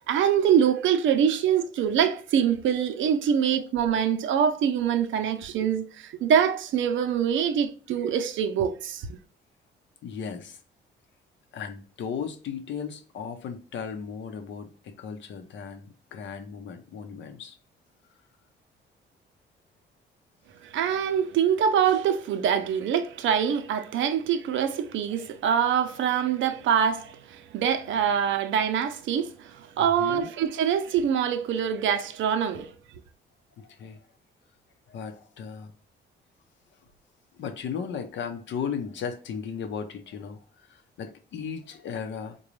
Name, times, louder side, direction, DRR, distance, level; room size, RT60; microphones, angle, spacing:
voice 1, 0.1-9.2 20.6-32.7, right 8 dB, 75° right, 0.6 m, -24 dB
voice 2, 10.0-10.6 11.5-17.6 29.8-30.3 33.6-34.0 34.9-35.7 37.3-42.4, left 6 dB, 65° left, 0.7 m, -36 dB
3.9 x 2.3 x 3.1 m
cardioid pair, 90°, 20 cm